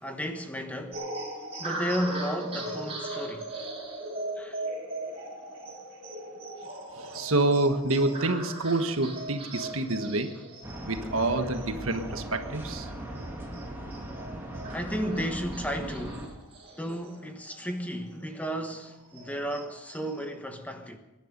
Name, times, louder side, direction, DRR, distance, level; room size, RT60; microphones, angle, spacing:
voice 1, 0.0-3.5 4.3-4.7 14.7-16.3 16.8-21.0, equal, 5° left, 1.3 m, -34 dB
sound 1, 0.9-17.8 18.2-18.3 18.7-20.3, right 2 dB, 30° right, 6.2 m, -39 dB
voice 2, 6.9-10.4 10.9-12.9, right 2 dB, 75° right, 1.5 m, -27 dB
sound 2, 10.6-16.3, right 1 dB, 10° right, 3.1 m, -39 dB
22.5 x 11.0 x 5.4 m
head